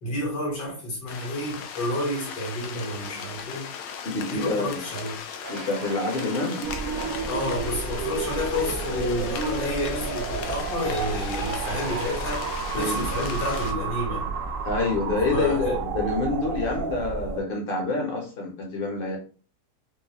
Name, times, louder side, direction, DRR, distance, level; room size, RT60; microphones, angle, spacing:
voice 1, 0.0-3.7 4.3-5.2 7.3-12.5 12.7-14.3 15.3-15.8, left 1 dB, 70° left, 2.1 m, -30 dB
sound 1, 1.1-13.7, left 7 dB, 90° left, 1.3 m, -37 dB
voice 2, 4.0-4.9 5.5-6.6 12.7-13.0 14.6-19.2, left 3 dB, 40° left, 0.8 m, -27 dB
sound 2, 5.4-13.1, right 3 dB, 85° right, 1.5 m, -39 dB
sound 3, 6.6-17.4, right 4 dB, 65° right, 0.8 m, -31 dB
4.6 x 2.1 x 2.9 m
omnidirectional pair, 1.9 m